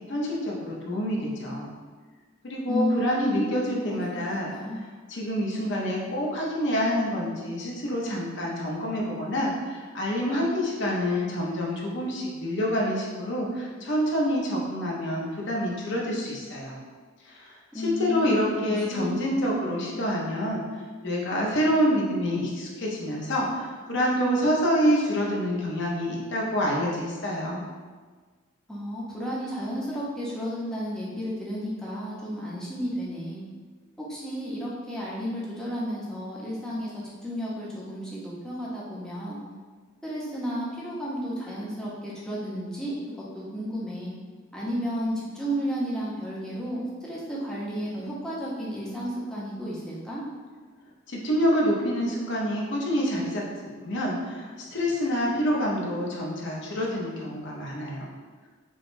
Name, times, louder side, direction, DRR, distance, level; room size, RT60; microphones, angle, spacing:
voice 1, 0.1-1.7 2.4-4.5 5.1-16.8 17.2-27.6 51.1-58.1, equal, 60° left, -3 dB, 0.7 m, -27 dB
voice 2, 2.7-4.0 4.5-4.8 17.7-18.3 18.6-19.2 28.7-33.4 34.0-36.9 37.2-39.4 40.0-43.0 43.3-44.1 44.5-50.2, equal, 5° left, -6 dB, 0.7 m, -32 dB
4.7 x 2.2 x 2.6 m, 1.5 s
head